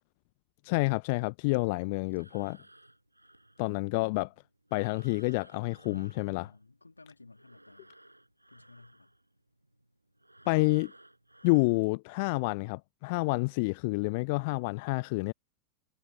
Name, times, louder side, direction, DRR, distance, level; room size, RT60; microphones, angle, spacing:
voice 1, 0.6-2.6 3.6-4.3 4.7-6.5 10.5-10.9 11.4-15.3, left 27 dB, 45° left, 0.7 m, -29 dB
Breathing, 2.0-7.0 7.3-12.0, right 1 dB, 85° right, 5.3 m, -57 dB
voice 2, 6.3-7.9 8.5-9.1, left 3 dB, 80° left, 3.2 m, -56 dB
figure-of-eight pair, 90°, 0 cm